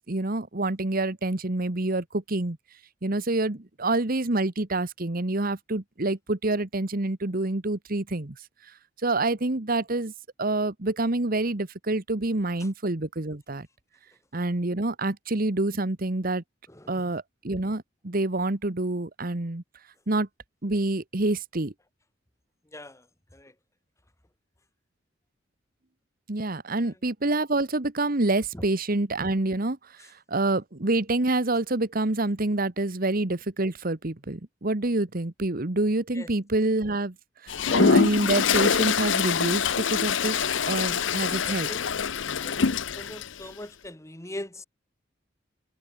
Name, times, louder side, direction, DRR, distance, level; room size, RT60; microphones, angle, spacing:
voice 1, 0.1-2.6 3.0-8.4 9.0-10.1 10.4-13.7 14.3-16.4 16.9-19.6 20.1-20.3 20.6-21.7 26.3-29.8 30.3-37.1 37.4-41.7, right 2 dB, 50° right, 1.4 m, -27 dB
voice 2, 16.7-17.2 22.7-23.1 23.3-23.5 26.8-26.9 28.5-28.6 36.1-36.3 41.4-41.8 42.4-44.6, left 1 dB, 15° left, 2.2 m, -41 dB
Toilet flush, 37.5-43.3, left 6 dB, 80° left, 0.8 m, -24 dB
head